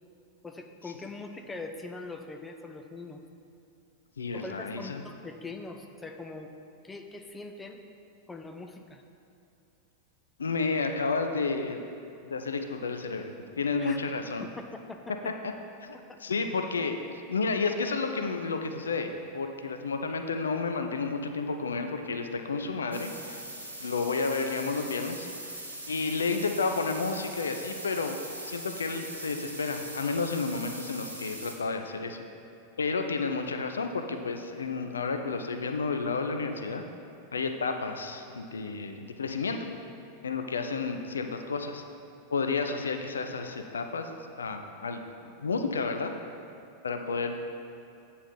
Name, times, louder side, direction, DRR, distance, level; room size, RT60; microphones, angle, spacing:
voice 1, 0.4-3.2 4.3-6.5 6.8-7.8 8.3-9.0 13.8-14.0 14.4-15.0 15.9-16.0, left 3 dB, 10° left, 5 dB, 0.5 m, -42 dB
voice 2, 4.2-5.0 10.4-11.8 12.2-14.5 15.8-17.0 17.3-23.4 23.8-25.3 25.9-32.2 32.8-36.8 37.3-39.6 40.2-41.8 42.3-44.1 44.4-45.0 45.4-46.1 46.8-47.4, left 4 dB, 70° left, 6 dB, 0.5 m, -31 dB
sound 1, 22.9-31.5, right 1 dB, 80° right, 1.1 m, -41 dB
9.0 x 4.3 x 5.3 m, 2.7 s
figure-of-eight pair, 90°, 0 cm